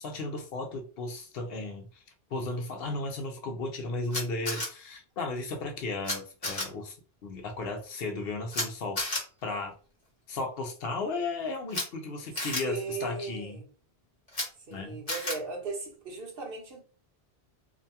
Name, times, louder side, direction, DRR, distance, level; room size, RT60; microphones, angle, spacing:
voice 1, 0.0-1.9 2.3-6.9 7.2-9.0 9.4-9.7 10.3-13.6 14.7-15.0, left 2 dB, 70° left, 0.9 m, -35 dB
Camera, 4.1-4.7 6.0-6.1 6.4-6.6 8.5-8.7 9.0-9.2 11.7-11.8 12.4-12.6 14.3-14.5 15.1-15.4, left 2 dB, 35° left, 1.0 m, -31 dB
voice 2, 12.3-13.7 14.7-16.8, right 4 dB, 60° right, 1.0 m, -37 dB
2.6 x 2.2 x 2.7 m
omnidirectional pair, 1.1 m